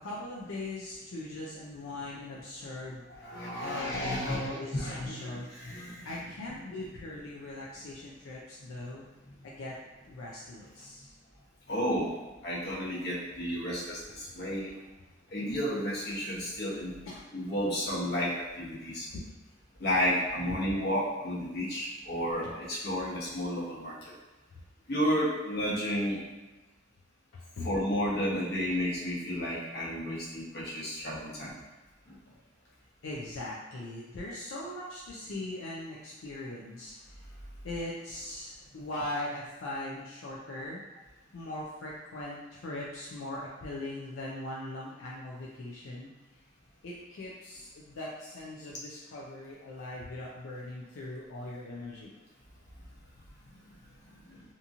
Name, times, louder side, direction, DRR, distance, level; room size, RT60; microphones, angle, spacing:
voice 1, 0.0-3.3 3.6-5.5 6.0-9.1 9.4-9.8 10.1-11.1 17.1-17.2 22.4-22.5 27.3-27.7 33.0-37.3 37.6-40.8 41.3-46.1 46.8-52.1, left 1 dB, 80° left, -5 dB, 0.4 m, -40 dB
voice 2, 3.1-6.2 9.3-9.4 11.7-12.1 12.4-14.7 15.3-17.0 17.3-19.1 19.8-24.1 24.9-26.2 27.6-31.6 32.1-32.2 54.1-54.4, equal, 55° left, -7 dB, 0.9 m, -32 dB
2.8 x 2.6 x 2.4 m, 1.1 s
head